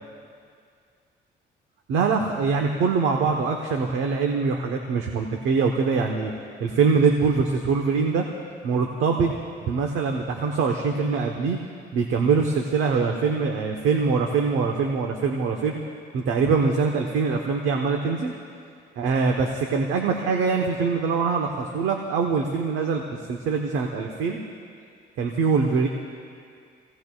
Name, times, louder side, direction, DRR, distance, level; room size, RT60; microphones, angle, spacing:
voice 1, 1.9-6.3 6.6-8.2 8.6-9.3 9.6-11.6 11.9-15.8 16.1-18.3 19.0-23.0 23.3-24.4 25.2-25.9, right 5 dB, 90° right, 2 dB, 1.1 m, -23 dB
28.0 x 17.0 x 2.4 m, 2.2 s
cardioid pair, 90°, 20 cm